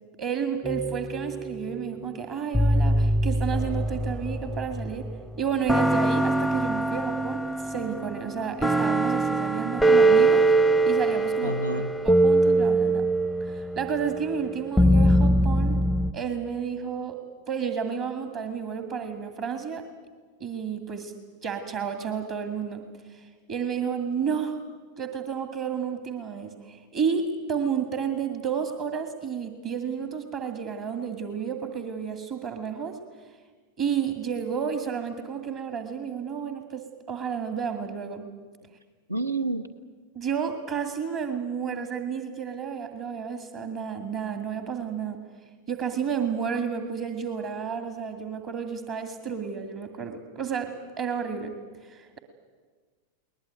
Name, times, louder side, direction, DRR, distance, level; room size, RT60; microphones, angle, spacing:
voice 1, 0.2-5.1 5.4-10.5 10.9-13.1 13.4-15.8 16.1-19.9 20.4-21.1 21.4-24.6 25.0-33.0 33.8-38.2 40.1-45.2 45.7-52.2, right 7 dB, 40° right, 7 dB, 2.1 m, -31 dB
sound 1, 0.6-1.8 2.5-5.1 5.7-16.1, right 1 dB, ahead, 0.6 m, -23 dB
voice 2, 11.4-11.9 39.1-39.6, right 2 dB, 80° right, 11 dB, 1.2 m, -28 dB
22.0 x 20.0 x 9.2 m, 1.5 s
figure-of-eight pair, 90°, 0 cm